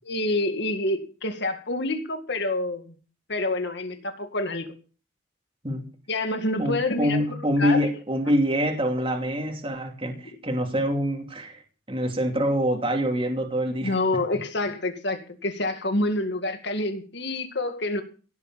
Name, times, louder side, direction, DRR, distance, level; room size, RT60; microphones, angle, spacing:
voice 1, 0.1-2.9 3.3-4.7 6.1-7.9 13.8-18.0, left 2 dB, 60° left, 7 dB, 2.2 m, -27 dB
voice 2, 6.6-11.6 11.9-14.2, equal, 25° right, 3 dB, 2.8 m, -25 dB
17.0 x 8.0 x 7.5 m, 0.39 s
head